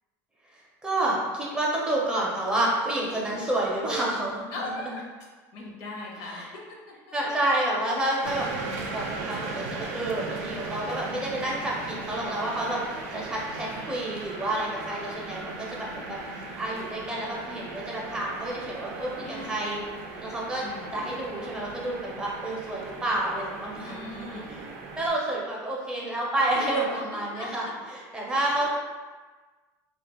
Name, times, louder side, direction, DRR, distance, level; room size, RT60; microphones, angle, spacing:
voice 1, 0.8-4.5 6.2-6.5 7.1-8.5 8.8-16.2 16.6-19.8 20.2-20.6 20.9-24.7 25.0-28.7, right 1 dB, 10° right, -4 dB, 0.5 m, -29 dB
voice 2, 4.5-5.1 5.5-6.9 15.7-16.0 19.2-19.7 20.6-21.0 23.9-24.6 26.5-27.7, left 2 dB, 65° left, -2 dB, 0.6 m, -40 dB
sound 1, 8.2-25.1, right 3 dB, 90° right, 0.4 m, -38 dB
2.4 x 2.2 x 2.8 m, 1.4 s
cardioid pair, 145°, 8 cm